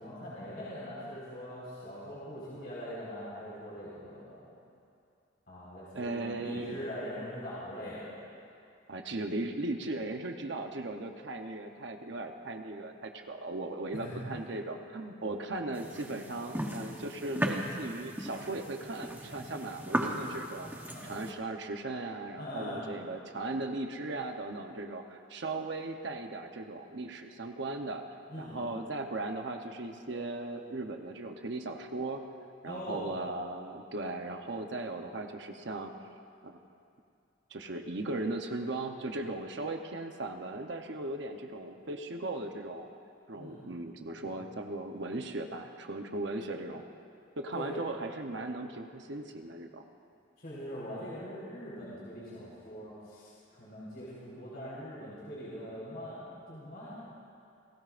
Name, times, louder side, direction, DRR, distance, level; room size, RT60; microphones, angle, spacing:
voice 1, 0.0-4.4 5.5-8.1 13.9-14.5 15.2-15.3 20.9-21.2 22.4-22.8 28.3-28.7 32.6-33.1 43.3-43.8 44.2-44.4 47.5-47.8 50.4-56.9, equal, 55° left, -9 dB, 4.5 m, -42 dB
voice 2, 5.9-6.8 8.9-20.7 21.0-28.0 28.4-32.3 32.6-35.9 36.4-36.6 37.5-42.9 43.3-46.8 47.4-49.8, right 2 dB, 65° right, 4 dB, 0.9 m, -37 dB
sound 1, 15.7-21.3, right 1 dB, 10° right, 1.0 m, -37 dB
29.0 x 17.5 x 2.5 m, 2.5 s
head